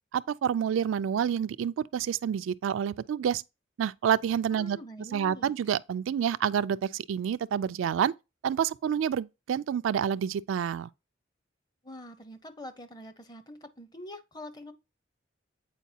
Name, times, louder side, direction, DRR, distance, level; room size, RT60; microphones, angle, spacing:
voice 1, 0.1-3.4 3.8-4.8 5.1-8.1 8.4-10.9, right 8 dB, 80° right, 0.3 m, -28 dB
voice 2, 4.5-5.5 11.8-14.7, left 1 dB, 20° left, 0.7 m, -45 dB
8.2 x 4.5 x 2.7 m
head